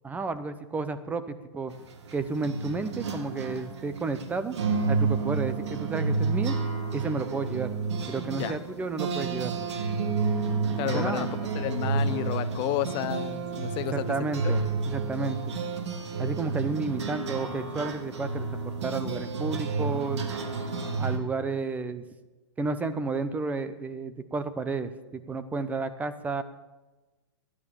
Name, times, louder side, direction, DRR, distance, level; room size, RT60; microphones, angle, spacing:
voice 1, 0.0-1.7 2.1-4.6 4.9-6.6 6.9-7.7 8.1-9.5 10.9-11.3 13.9-15.6 16.2-20.2 21.0-22.0 22.6-26.4, right 4 dB, 10° right, 11 dB, 0.8 m, -32 dB
sound 1, 1.7-21.2, right 4 dB, 80° right, 2.4 m, -30 dB
voice 2, 10.8-14.2 14.4-14.5, left 13 dB, 30° left, 12 dB, 0.8 m, -31 dB
15.0 x 11.0 x 7.1 m, 1.2 s
hypercardioid pair, 145°, 15 cm